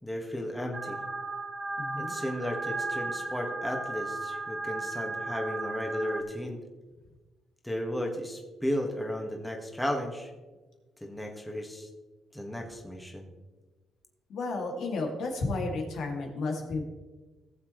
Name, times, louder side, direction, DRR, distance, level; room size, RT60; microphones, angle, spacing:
voice 1, 0.0-1.0 2.0-6.6 7.6-10.3 11.0-11.9 12.3-13.3, equal, 5° left, 1 dB, 1.8 m, -34 dB
sound 1, 0.7-6.2, right 2 dB, 35° right, 2.0 m, -35 dB
voice 2, 1.8-2.1 14.3-16.8, left 3 dB, 70° left, 1 dB, 2.5 m, -32 dB
17.5 x 7.4 x 3.2 m, 1.2 s
cardioid pair, 90°, 0 cm